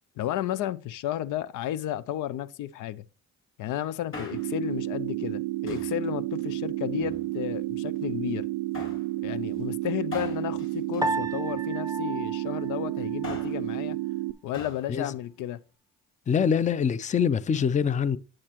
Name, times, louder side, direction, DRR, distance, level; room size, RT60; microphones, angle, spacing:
voice 1, 0.2-3.0 3.6-8.5 9.2-14.0 14.4-15.6, left 12 dB, 80° left, 0.5 m, -33 dB
Male speech man speaking, 4.1-4.7 5.7-6.0 6.8-7.6 8.7-9.1 10.1-11.8 13.0-13.7 14.5-14.9 15.1-15.2, left 3 dB, 40° left, 3.0 m, -42 dB
sound 1, 4.3-14.3, right 17 dB, 80° right, 0.5 m, -31 dB
Piano, 11.0-13.5, right 2 dB, 10° right, 0.7 m, -34 dB
voice 2, 16.3-18.2, left 7 dB, 25° left, 0.4 m, -24 dB
8.7 x 7.5 x 2.9 m
cardioid pair, 90°, 30 cm